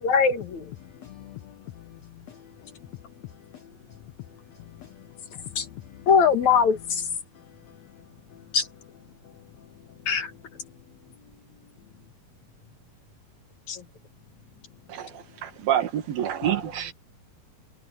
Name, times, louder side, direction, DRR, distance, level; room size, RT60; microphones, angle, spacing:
voice 1, 0.0-0.6 5.6-5.7 6.1-7.0 8.5-8.7 10.1-10.3 13.7-13.8, left 6 dB, 55° left, 3.0 m, -21 dB
voice 2, 0.8-6.1 6.5-6.6 7.3-8.0 8.3-8.6 9.2-10.7, left 13 dB, 75° left, 1.5 m, -47 dB
voice 3, 15.4-16.9, right 10 dB, 75° right, 3.6 m, -27 dB
omnidirectional pair, 4.2 m